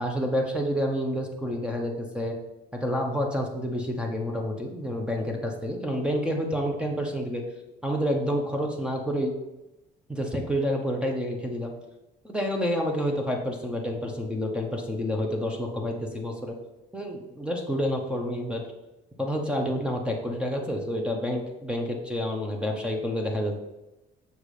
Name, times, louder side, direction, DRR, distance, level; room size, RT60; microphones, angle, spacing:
voice 1, 0.0-2.4 2.7-7.4 7.8-9.3 10.1-11.7 12.2-16.5 16.9-18.7 19.2-23.6, equal, 5° right, 1 dB, 1.1 m, -29 dB
6.7 x 4.8 x 4.9 m, 0.98 s
cardioid pair, 110°, 17 cm